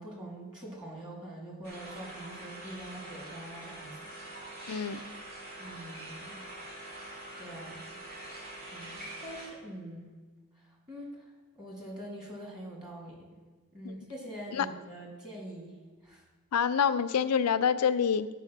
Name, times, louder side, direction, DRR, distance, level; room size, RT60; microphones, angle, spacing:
voice 1, 0.0-4.1 5.6-6.4 7.4-7.8 8.7-10.1 10.6-11.3 11.5-13.2 13.7-15.8 16.0-16.2, right 1 dB, 20° right, -2 dB, 2.5 m, -44 dB
sound 1, 1.6-9.5, right 1 dB, 45° right, 2.2 m, -44 dB
voice 2, 4.7-5.0 13.8-13.9 14.5-14.7 16.5-18.3, left 7 dB, 85° left, 13 dB, 0.5 m, -26 dB
10.5 x 4.9 x 5.9 m, 1.3 s
head